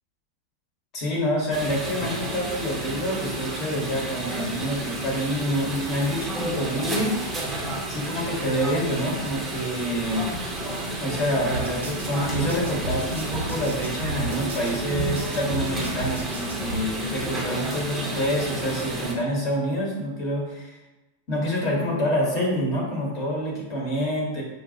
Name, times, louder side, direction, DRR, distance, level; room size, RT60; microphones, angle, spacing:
voice 1, 0.9-7.2 7.9-10.3 11.0-20.6 21.3-24.4, equal, 35° left, -2 dB, 1.3 m, -27 dB
sound 1, 1.5-19.1, right 1 dB, 15° right, 0.9 m, -31 dB
sound 2, 11.5-16.8, right 2 dB, 75° right, 0.8 m, -33 dB
6.5 x 2.4 x 2.8 m, 1.1 s
figure-of-eight pair, 90°, 0 cm